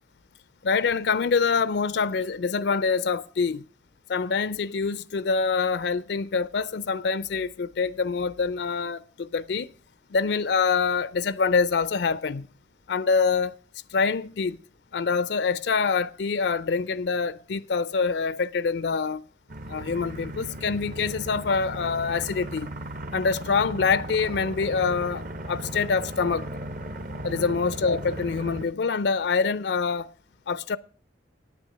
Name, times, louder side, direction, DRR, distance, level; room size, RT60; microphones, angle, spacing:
voice 1, 0.6-3.7 4.1-9.7 10.1-12.5 12.9-13.6 13.9-14.6 14.9-19.2 19.7-22.7 23.1-26.5 27.2-30.1 30.5-30.8, left 5 dB, 65° left, 0.4 m, -25 dB
sound 1, 19.5-28.6, right 1 dB, 45° right, 0.9 m, -36 dB
9.4 x 9.0 x 6.3 m
head